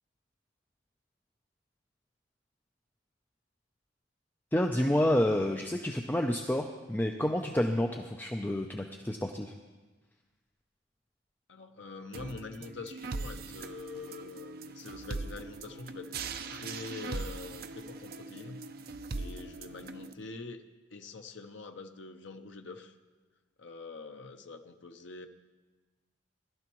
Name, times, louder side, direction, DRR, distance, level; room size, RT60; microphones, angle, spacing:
voice 1, 4.5-9.5, left 1 dB, 10° left, 3 dB, 0.5 m, -29 dB
voice 2, 11.5-16.1 16.5-18.6 19.1-20.6 20.9-22.9 23.6-25.3, left 3 dB, 65° left, 6 dB, 0.8 m, -45 dB
sound 1, 12.1-20.1, right 3 dB, 50° right, 0.5 m, -41 dB
20.0 x 12.0 x 3.0 m, 1.3 s
head